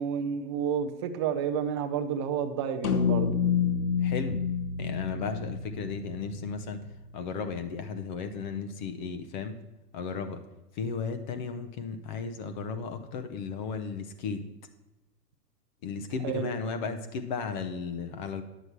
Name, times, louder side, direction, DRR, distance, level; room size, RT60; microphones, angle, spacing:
voice 1, 0.0-3.3 16.2-16.6, right 7 dB, 20° right, 6 dB, 0.4 m, -30 dB
sound 1, 2.8-7.3, left 6 dB, 65° left, 1.1 m, -29 dB
voice 2, 4.0-4.4 4.8-6.8 7.1-9.6 9.9-10.4 10.8-14.4 15.8-18.4, left 5 dB, 30° left, 8 dB, 0.7 m, -35 dB
10.0 x 7.7 x 4.5 m, 1.0 s
figure-of-eight pair, 105°, 49 cm